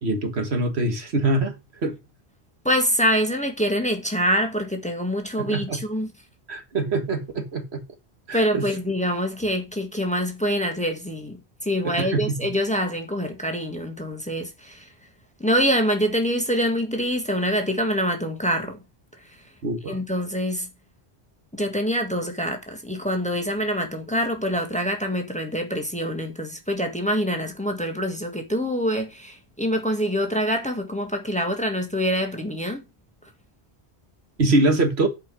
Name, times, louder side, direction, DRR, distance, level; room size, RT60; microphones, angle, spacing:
voice 1, 0.0-1.5 1.8-2.0 5.4-5.8 6.5-7.8 8.3-8.6 11.8-12.3 19.6-20.0 34.4-35.1, right 2 dB, 75° right, 1.8 m, -24 dB
voice 2, 2.6-6.1 8.3-14.9 15.4-18.8 19.9-20.7 21.5-32.8, equal, 5° left, 1.5 m, -25 dB
8.3 x 5.1 x 6.1 m
omnidirectional pair, 1.1 m